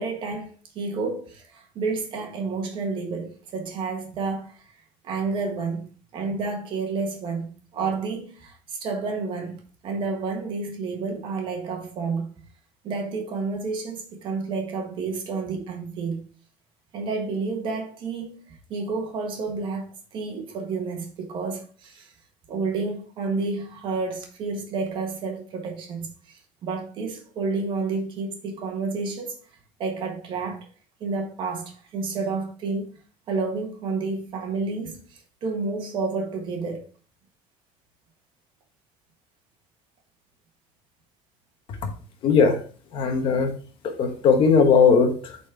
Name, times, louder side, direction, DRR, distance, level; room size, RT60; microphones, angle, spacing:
voice 1, 0.0-4.6 5.0-5.8 6.1-9.6 9.8-12.3 12.8-16.2 16.9-22.1 22.5-29.4 29.8-30.7 31.0-32.9 33.3-36.8, right 4 dB, 45° right, 1.5 m, -30 dB
voice 2, 42.2-42.6 42.9-43.5 43.8-45.4, left 5 dB, 45° left, 1.1 m, -19 dB
8.5 x 4.3 x 3.4 m
cardioid pair, 180°, 12 cm